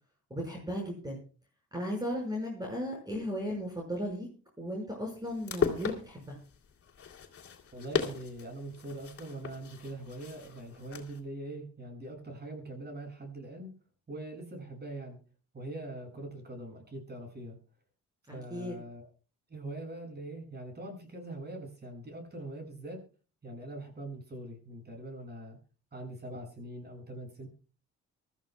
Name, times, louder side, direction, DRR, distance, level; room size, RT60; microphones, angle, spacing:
voice 1, 0.3-1.2 1.7-4.3 4.6-6.4 18.3-18.8, equal, 15° right, 0 dB, 5.9 m, -36 dB
sound 1, 5.2-11.2, left 7 dB, 50° left, 3.2 m, -37 dB
voice 2, 7.7-13.7 14.1-15.2 15.5-17.6 18.3-19.1 19.5-23.0 23.4-25.6 25.9-27.5, right 1 dB, 35° right, 3 dB, 7.6 m, -42 dB
24.5 x 14.0 x 2.4 m, 0.36 s
cardioid pair, 90°, 30 cm